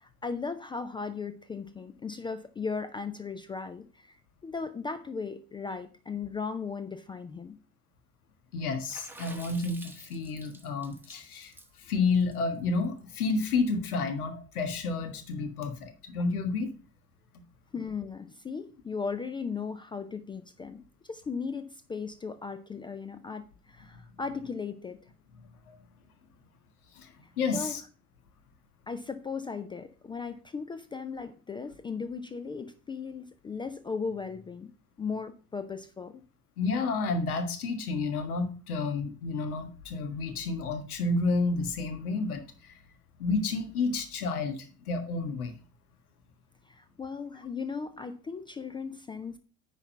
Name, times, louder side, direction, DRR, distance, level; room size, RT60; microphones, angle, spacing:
voice 1, 0.0-4.2 4.4-7.6 17.7-25.0 27.5-27.7 28.9-34.7 35.0-36.2 46.7-49.4, left 5 dB, 10° left, 10 dB, 0.4 m, -37 dB
voice 2, 8.5-11.5 11.8-16.7 25.7-25.8 26.9-27.8 36.6-42.7 43.2-45.5, left 3 dB, 70° left, 8 dB, 1.6 m, -30 dB
Water / Splash splatter, 8.9-13.4, right 2 dB, 5° right, 1.3 m, -50 dB
9.8 x 4.1 x 5.5 m, 0.38 s
figure-of-eight pair, 70°, 46 cm